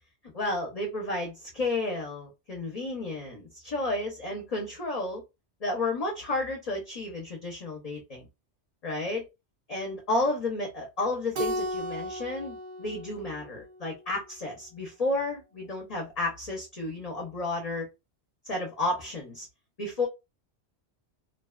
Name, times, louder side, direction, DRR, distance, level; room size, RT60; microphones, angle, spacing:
voice 1, 0.3-5.2 5.6-8.3 8.8-9.3 9.7-17.9 18.4-19.5 19.8-20.1, left 2 dB, 40° left, 0.7 m, -32 dB
Keyboard (musical), 11.3-14.0, equal, 55° right, 0.5 m, -35 dB
2.6 x 2.2 x 2.2 m
omnidirectional pair, 1.2 m